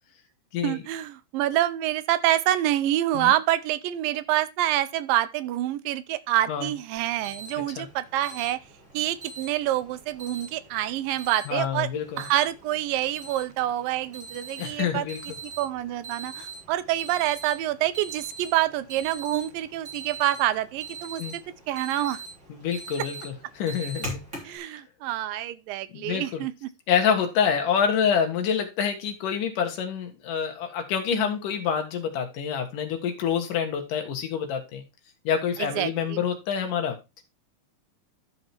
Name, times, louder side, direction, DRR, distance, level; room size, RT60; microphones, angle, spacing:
voice 1, 0.6-8.6 8.9-11.9 12.2-15.1 15.6-21.4 21.7-22.2 24.4-26.7 31.1-31.3 35.6-36.2, right 13 dB, 85° right, 2.4 m, -27 dB
Alarm, 7.0-24.6, right 3 dB, 20° right, 3.1 m, -43 dB
voice 2, 7.6-7.9 11.5-12.3 14.6-15.2 21.2-21.4 22.5-24.2 25.9-26.4 26.9-34.8 35.2-37.2, left 7 dB, 70° left, 3.1 m, -27 dB
12.5 x 5.1 x 4.4 m
omnidirectional pair, 4.0 m